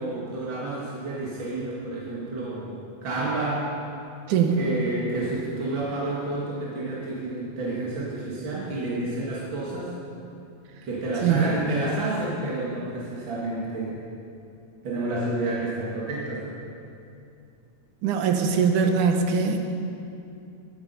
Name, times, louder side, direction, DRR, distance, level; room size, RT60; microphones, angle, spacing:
voice 1, 0.0-3.7 4.5-9.9 10.9-14.0 14.8-16.5, right 2 dB, 45° right, -6 dB, 2.3 m, -30 dB
voice 2, 4.3-4.6 11.2-11.5 18.0-19.6, right 6 dB, 85° right, 4 dB, 2.5 m, -21 dB
19.5 x 8.6 x 5.5 m, 2.6 s
omnidirectional pair, 3.5 m